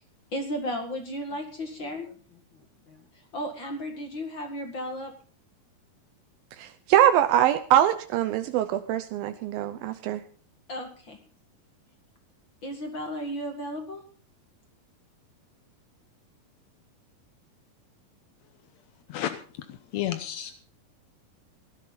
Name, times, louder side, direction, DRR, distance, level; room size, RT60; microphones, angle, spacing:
voice 1, 0.3-2.4 2.9-3.0 3.3-5.1 10.7-11.2 12.6-14.0, equal, 40° left, 4 dB, 2.2 m, -34 dB
voice 2, 6.6-10.2, right 11 dB, 80° right, 10 dB, 2.5 m, -23 dB
voice 3, 19.1-20.5, left 12 dB, 70° left, 9 dB, 1.6 m, -32 dB
17.5 x 13.0 x 4.0 m, 0.39 s
omnidirectional pair, 4.2 m